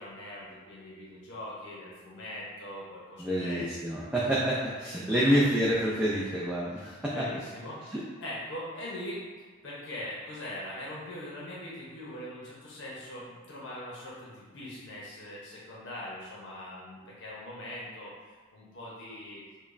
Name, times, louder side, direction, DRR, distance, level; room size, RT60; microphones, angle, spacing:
voice 1, 0.0-3.6 4.2-4.4 5.1-5.4 6.2-6.3 6.8-9.2 9.6-19.4, left 1 dB, 55° left, -6 dB, 0.7 m, -42 dB
voice 2, 3.2-7.2, equal, 5° right, -7 dB, 0.3 m, -27 dB
5.0 x 2.2 x 2.4 m, 1.4 s
head